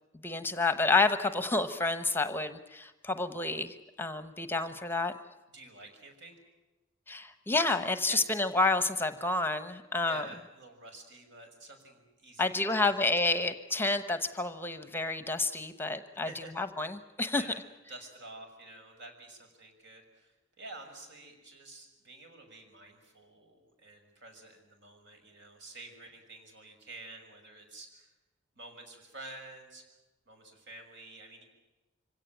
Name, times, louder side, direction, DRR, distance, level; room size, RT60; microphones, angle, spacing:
voice 1, 0.2-5.1 7.1-10.3 12.4-16.3 16.6-17.4, left 3 dB, 10° left, 11 dB, 1.0 m, -29 dB
voice 2, 5.5-6.4 8.1-8.2 10.0-12.9 13.3-13.4 16.2-16.5 17.3-17.6 17.9-28.1 28.6-29.8 30.3-31.4, right 2 dB, 65° right, 4 dB, 6.4 m, -49 dB
25.5 x 17.5 x 9.2 m, 1.1 s
head